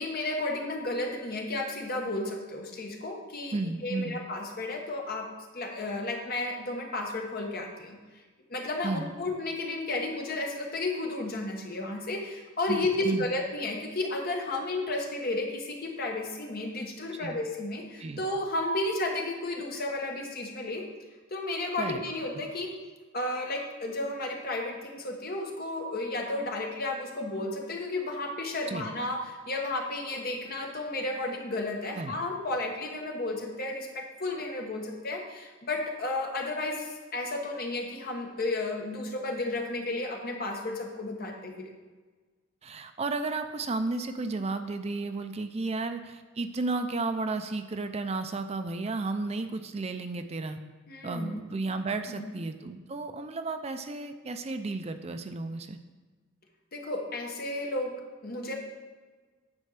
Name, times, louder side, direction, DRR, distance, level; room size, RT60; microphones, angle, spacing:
voice 1, 0.0-3.6 3.8-5.2 5.5-8.0 8.5-20.8 21.3-22.7 23.1-41.7 50.9-51.4 52.1-52.3 56.7-57.9 58.2-58.5, left 2 dB, 45° left, 1 dB, 1.4 m, -33 dB
voice 2, 3.5-4.2 8.8-9.1 12.7-13.3 17.1-17.4 18.0-18.2 21.8-22.0 28.7-28.9 32.0-32.2 42.6-50.6 51.0-55.8, right 3 dB, 30° right, 8 dB, 0.5 m, -33 dB
9.6 x 4.4 x 6.6 m, 1.3 s
head